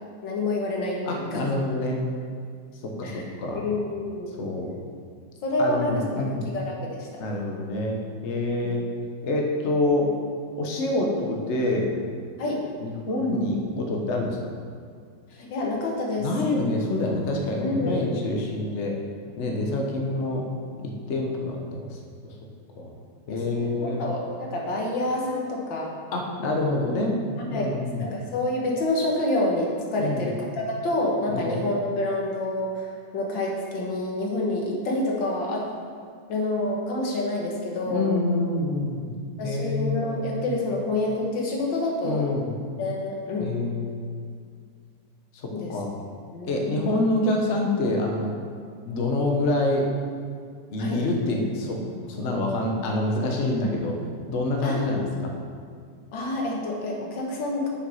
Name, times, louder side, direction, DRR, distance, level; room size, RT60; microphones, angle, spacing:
voice 1, 0.0-1.5 3.0-3.3 3.6-4.3 5.4-6.3 6.5-7.2 8.6-8.7 12.4-12.6 15.3-16.3 17.6-18.2 23.3-25.9 27.5-27.7 28.0-32.9 33.1-35.7 36.3-38.2 39.4-42.3 42.8-43.6 45.5-45.7 46.3-46.8 50.8-51.0 54.6-55.0 56.1-57.7, left 2 dB, 90° left, -1 dB, 2.0 m, -28 dB
voice 2, 1.0-2.0 2.8-3.6 4.4-4.7 5.6-6.5 7.2-8.8 9.2-10.1 10.6-11.9 12.8-14.4 16.2-18.9 19.4-20.5 20.8-22.0 22.8-22.9 23.3-24.0 26.1-27.2 27.5-28.1 30.0-30.3 31.3-31.5 37.9-39.1 39.4-40.5 42.0-42.5 43.4-43.9 45.3-45.9 46.5-48.4 48.8-49.9 50.7-54.0 54.3-55.3, left 2 dB, 45° left, 0 dB, 1.2 m, -26 dB
6.7 x 6.2 x 5.5 m, 2.1 s
omnidirectional pair, 2.0 m